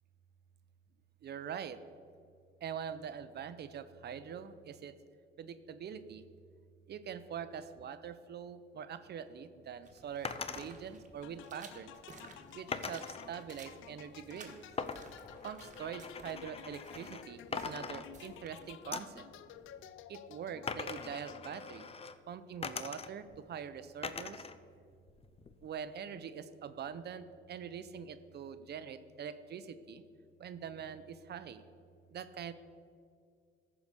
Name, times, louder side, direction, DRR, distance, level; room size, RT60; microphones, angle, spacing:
voice 1, 1.2-1.8 2.6-4.9 5.4-6.2 6.9-11.9 12.5-14.6 15.4-19.3 20.1-21.9 22.3-24.5 25.6-30.0 30.4-31.6 32.1-32.5, right 7 dB, 55° right, 12 dB, 0.6 m, -44 dB
sound 1, 9.8-19.8, right 3 dB, 40° right, 1.5 m, -57 dB
sound 2, 10.2-10.7 12.7-13.3 14.8-17.3 17.5-18.5 18.9-19.2 20.7-22.2 22.6-23.4 24.0-24.6 24.9-25.7, left 5 dB, 30° left, 0.5 m, -42 dB
sound 3, 11.2-21.9, left 10 dB, 80° left, 0.5 m, -53 dB
13.5 x 4.9 x 6.7 m, 2.2 s
cardioid pair, 90°, 20 cm